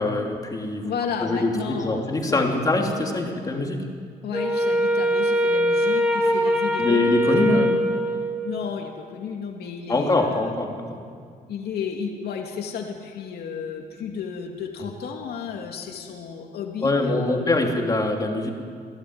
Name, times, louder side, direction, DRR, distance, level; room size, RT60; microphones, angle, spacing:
voice 1, 0.0-0.9 1.2-3.8 6.8-7.8 9.9-11.1 14.8-14.9 16.8-18.5, left 2 dB, 20° left, 1 dB, 3.2 m, -23 dB
voice 2, 0.8-2.6 3.2-3.4 4.2-7.0 7.5-7.8 8.4-10.5 11.5-17.7, left 6 dB, 80° left, 2 dB, 2.5 m, -33 dB
Wind instrument woodwind instrument, 4.3-8.7, equal, 10° right, 2.7 m, -22 dB
27.0 x 17.0 x 9.6 m, 2.1 s
cardioid pair, 160°, 16 cm